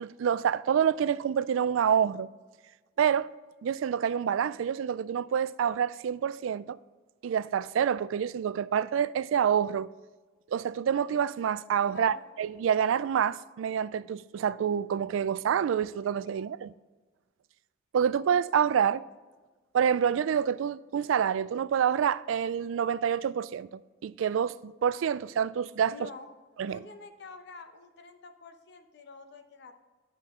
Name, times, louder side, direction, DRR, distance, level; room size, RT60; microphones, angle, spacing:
voice 1, 0.0-2.3 3.0-3.3 3.6-6.8 7.2-9.9 10.5-16.7 17.9-19.0 19.7-23.7 24.0-26.1 26.6-26.8, right 8 dB, 70° right, 0.3 m, -27 dB
voice 2, 11.9-12.2 16.3-16.5 25.9-26.3 26.7-29.7, left 4 dB, 60° left, 0.8 m, -47 dB
11.0 x 5.9 x 3.6 m
head